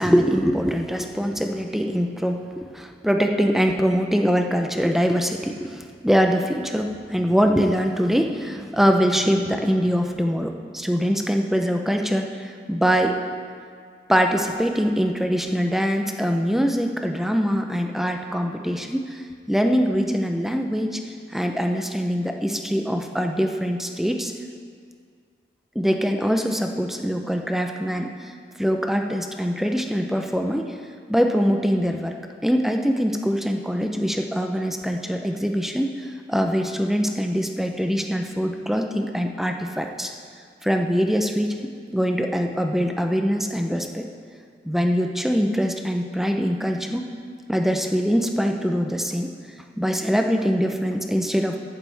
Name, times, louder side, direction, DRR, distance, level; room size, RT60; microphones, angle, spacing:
voice 1, 0.0-13.1 14.1-19.2 19.5-21.0 21.3-24.3 25.7-28.3 28.6-30.7 31.1-32.2 32.4-40.1 40.6-41.6 41.9-44.0 44.6-47.0 47.5-49.3 49.8-51.6, equal, ahead, 4 dB, 0.6 m, -23 dB
14.5 x 11.5 x 3.5 m, 2.1 s
head